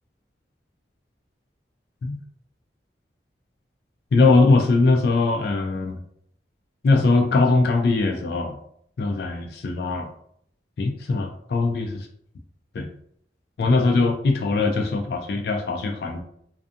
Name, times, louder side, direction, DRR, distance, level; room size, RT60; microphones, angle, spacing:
voice 1, 4.1-6.0 6.8-8.6 9.0-10.1 10.8-12.0 12.7-12.9 13.6-16.2, left 3 dB, 60° left, 3 dB, 0.3 m, -21 dB
2.5 x 2.3 x 2.4 m, 0.68 s
head